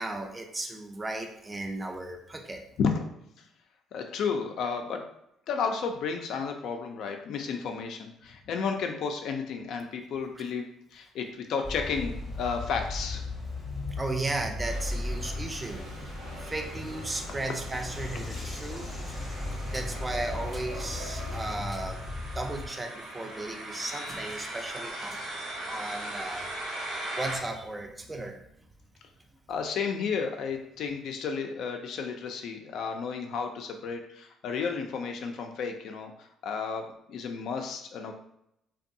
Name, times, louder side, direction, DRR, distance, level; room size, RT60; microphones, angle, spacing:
voice 1, 0.0-2.6 14.0-15.9 16.4-18.9 19.7-22.1 22.3-25.2 25.7-26.5 27.2-28.4, right 2 dB, 20° right, 4 dB, 0.4 m, -35 dB
voice 2, 3.9-5.0 5.5-13.3 29.5-38.1, left 5 dB, 70° left, 4 dB, 0.4 m, -32 dB
sound 1, 11.6-22.7, left 2 dB, 15° left, 0.7 m, -36 dB
sound 2, 14.6-21.6, right 1 dB, 85° right, 1.1 m, -44 dB
sound 3, 19.1-27.4, right 1 dB, 70° right, 0.7 m, -39 dB
2.6 x 2.2 x 2.6 m, 0.78 s
cardioid pair, 90°, 0 cm